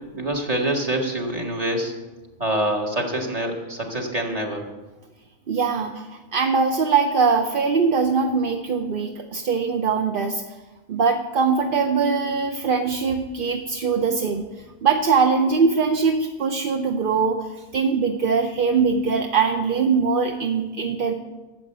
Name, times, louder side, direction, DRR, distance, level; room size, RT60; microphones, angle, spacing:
voice 1, 0.1-1.9 2.4-4.6, right 1 dB, 25° right, 1 dB, 2.0 m, -25 dB
voice 2, 5.5-10.4 10.9-21.1, right 5 dB, 50° right, 5 dB, 0.8 m, -22 dB
13.0 x 7.9 x 7.9 m, 1.2 s
omnidirectional pair, 1.4 m